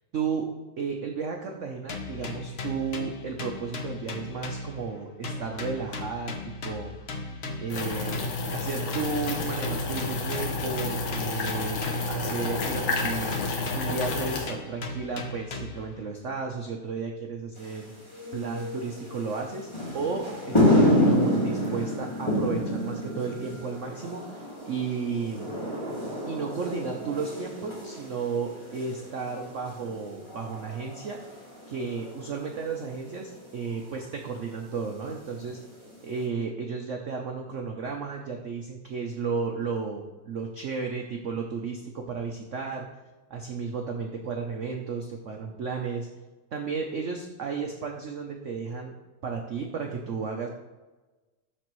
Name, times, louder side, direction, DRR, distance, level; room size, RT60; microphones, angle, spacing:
voice 1, 0.1-0.5 0.8-6.3 6.6-6.9 7.6-11.8 12.1-13.3 13.7-17.9 18.3-25.5 26.3-31.2 31.7-35.6 36.0-42.9 43.3-46.1 46.5-48.9 49.2-50.5, right 5 dB, 85° right, 2 dB, 0.6 m, -33 dB
sound 1, 1.9-5.0 5.2-8.5 8.9-12.3 12.6-15.9, left 3 dB, 65° left, 0.6 m, -38 dB
sound 2, 7.7-14.5, left 3 dB, 85° left, 2.0 m, -30 dB
sound 3, 17.6-36.2, left 1 dB, 15° left, 2.2 m, -30 dB
12.5 x 4.3 x 3.1 m, 1.2 s
omnidirectional pair, 2.2 m